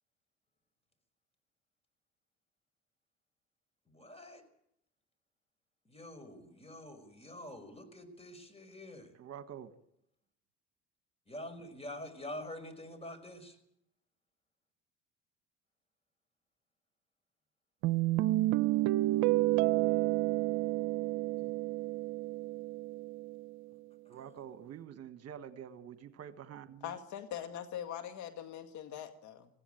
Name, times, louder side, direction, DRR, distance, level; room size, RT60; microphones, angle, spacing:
voice 1, 3.9-4.4 5.9-9.1 11.3-13.6 21.4-21.5, left 1 dB, 20° left, 5.3 m, -46 dB
voice 2, 9.1-9.7 24.1-26.9, right 9 dB, 50° right, 1.5 m, -47 dB
sound 1, 17.8-23.5, right 17 dB, 70° right, 0.7 m, -30 dB
voice 3, 26.8-29.5, left 10 dB, 65° left, 2.0 m, -42 dB
19.0 x 15.5 x 9.1 m
supercardioid pair, 75°, 31 cm